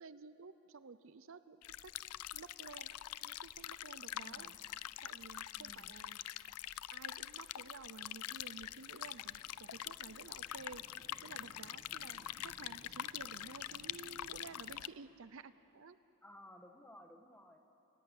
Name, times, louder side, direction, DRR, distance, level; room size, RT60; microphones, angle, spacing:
voice 1, 0.0-1.9 2.3-4.5 5.0-6.2 6.9-10.8 11.2-16.0, right 4 dB, 60° right, 13 dB, 0.6 m, -53 dB
sound 1, 1.6-14.9, left 12 dB, 85° left, 0.5 m, -45 dB
voice 2, 4.2-4.5 5.6-5.9 16.2-17.6, left 1 dB, 10° left, 4 dB, 1.5 m, -57 dB
sound 2, 8.3-14.9, right 1 dB, 30° right, 1.6 m, -64 dB
28.0 x 17.0 x 8.3 m, 2.9 s
head